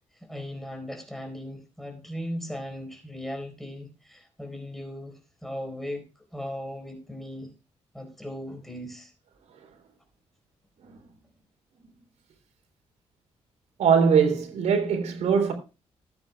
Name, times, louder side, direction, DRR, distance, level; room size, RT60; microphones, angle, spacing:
voice 1, 0.0-6.0 6.3-7.5 7.9-9.1, equal, ahead, 4.3 m, -37 dB
voice 2, 13.8-15.5, right 6 dB, 85° right, 3.6 m, -21 dB
19.0 x 9.0 x 2.3 m
cardioid pair, 115°, 11 cm